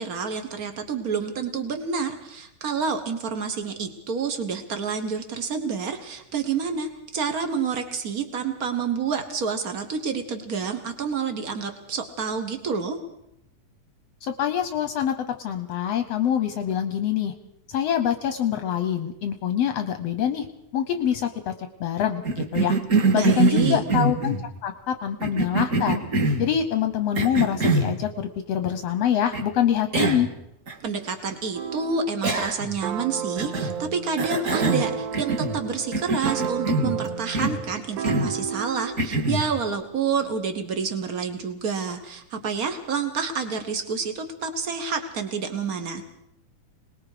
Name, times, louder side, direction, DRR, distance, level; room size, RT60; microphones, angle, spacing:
voice 1, 0.0-13.0 23.1-23.8 30.8-46.0, right 5 dB, 90° right, 7 dB, 0.7 m, -28 dB
voice 2, 14.2-17.3 17.7-20.5 20.7-21.5 21.8-22.8 23.1-24.4 24.6-26.0 26.4-30.3, left 9 dB, 70° left, 8 dB, 1.5 m, -25 dB
Cough, 22.2-24.4 25.2-26.5 27.1-27.9 29.3-29.4 29.9-30.3 30.7-30.8 32.2-32.8 33.4-33.8 34.2-35.6 35.9-37.0 37.3-37.6 38.0-38.4 39.0-39.5, right 3 dB, 30° right, 1.8 m, -24 dB
sound 1, 31.5-32.2 32.8-39.0, right 7 dB, 70° right, 2.5 m, -32 dB
26.5 x 20.0 x 5.0 m, 0.79 s
omnidirectional pair, 3.8 m